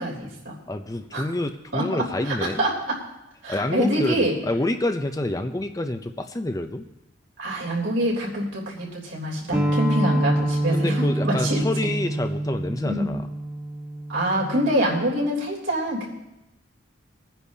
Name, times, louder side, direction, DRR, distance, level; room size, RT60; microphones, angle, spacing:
voice 1, 0.0-0.5 1.1-1.2 1.7-3.0 3.4-4.3 7.4-11.6 12.8-13.1 14.1-16.1, right 1 dB, 75° right, -3 dB, 3.3 m, -25 dB
voice 2, 0.7-2.6 3.5-6.8 10.7-13.3, left 1 dB, 15° left, 7 dB, 0.5 m, -27 dB
sound 1, 9.5-14.7, right 1 dB, 15° right, 1.5 m, -26 dB
22.0 x 10.0 x 2.8 m, 0.91 s
head